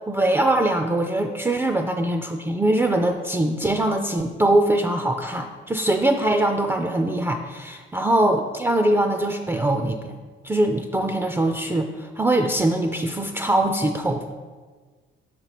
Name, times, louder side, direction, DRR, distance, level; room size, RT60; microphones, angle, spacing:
voice 1, 0.1-10.1 10.4-14.2, right 1 dB, 10° right, 5 dB, 0.3 m, -22 dB
6.2 x 3.0 x 5.7 m, 1.4 s
cardioid pair, 90°, 20 cm